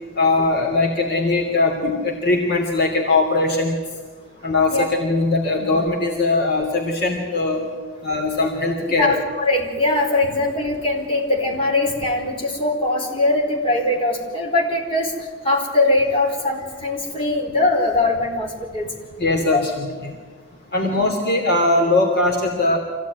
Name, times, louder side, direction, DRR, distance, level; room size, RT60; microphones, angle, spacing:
voice 1, 0.1-3.8 4.4-7.6 8.0-9.1 19.2-20.2 20.7-22.8, left 2 dB, 55° left, 1 dB, 3.1 m, -20 dB
voice 2, 9.0-15.1 15.4-18.5 18.7-18.9 19.5-19.6 20.8-21.1, left 2 dB, 30° left, -1 dB, 4.6 m, -21 dB
26.0 x 16.5 x 9.6 m, 1.5 s
head